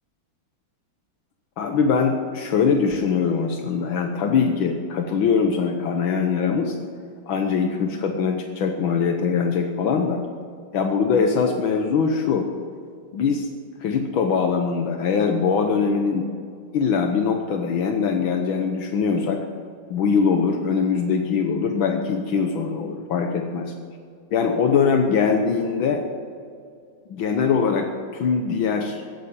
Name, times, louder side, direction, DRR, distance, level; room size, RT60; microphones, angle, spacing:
voice 1, 1.6-6.8 7.3-10.2 10.7-12.5 13.1-13.5 13.8-16.3 16.7-19.4 19.9-23.7 24.3-26.0 27.1-29.0, left 5 dB, 80° left, 4 dB, 1.8 m, -22 dB
15.5 x 10.0 x 8.7 m, 2.3 s
omnidirectional pair, 2.2 m